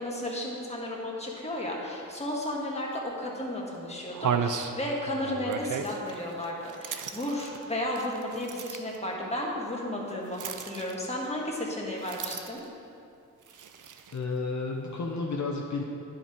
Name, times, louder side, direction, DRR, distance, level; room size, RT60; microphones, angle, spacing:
voice 1, 0.0-12.6, left 1 dB, 20° left, -3 dB, 1.6 m, -33 dB
sound 1, 2.9-3.0 3.6-3.7 4.1-9.0 10.3-11.3 12.0-12.7 13.4-14.2, right 6 dB, 75° right, 0.5 m, -35 dB
voice 2, 14.1-15.8, left 3 dB, 60° left, -1 dB, 0.8 m, -31 dB
10.0 x 5.2 x 4.5 m, 2.6 s
wide cardioid pair, 65°, 32 cm